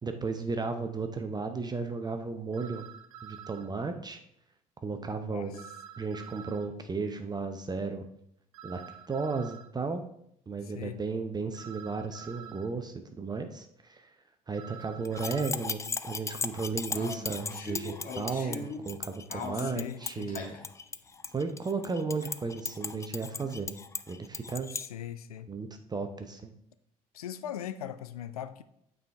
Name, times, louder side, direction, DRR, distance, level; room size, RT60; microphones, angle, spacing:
voice 1, 0.0-2.8 3.2-4.2 4.8-5.6 6.0-8.0 8.6-8.8 9.1-10.0 10.5-14.0 14.5-20.6 21.3-23.8 24.1-24.7 25.5-26.5, right 4 dB, 20° right, 0.7 m, -34 dB
sound 1, 0.6-0.7 2.5-3.7 5.5-6.7 8.5-9.7 11.5-12.7 14.5-15.5, right 9 dB, 70° right, 0.5 m, -47 dB
voice 2, 5.3-5.7 10.6-11.0 19.5-20.3 24.7-25.5 27.1-28.6, left 10 dB, 75° left, 0.4 m, -40 dB
sound 2, 15.0-15.1 15.4-15.5 16.9-19.0 19.3-20.7, left 4 dB, 45° left, 1.5 m, -40 dB
sound 3, 15.1-24.9, left 4 dB, 15° left, 0.4 m, -38 dB
9.0 x 4.9 x 3.4 m
figure-of-eight pair, 55°, 19 cm